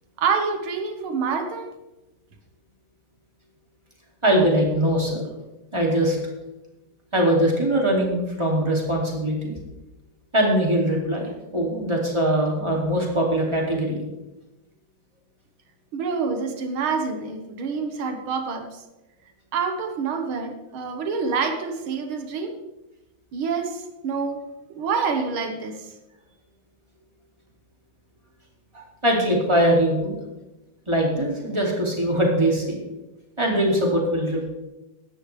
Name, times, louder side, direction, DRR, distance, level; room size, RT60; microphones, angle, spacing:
voice 1, 0.2-1.7 15.9-18.8 19.5-22.6 23.3-24.4 24.7-25.9, right 5 dB, 80° right, 5 dB, 2.2 m, -27 dB
voice 2, 4.2-5.2 5.7-6.2 7.1-9.6 10.3-14.0 28.7-30.2 30.9-32.8 33.4-34.5, right 1 dB, 15° right, -1 dB, 2.5 m, -22 dB
16.0 x 11.0 x 3.3 m, 1.0 s
omnidirectional pair, 2.3 m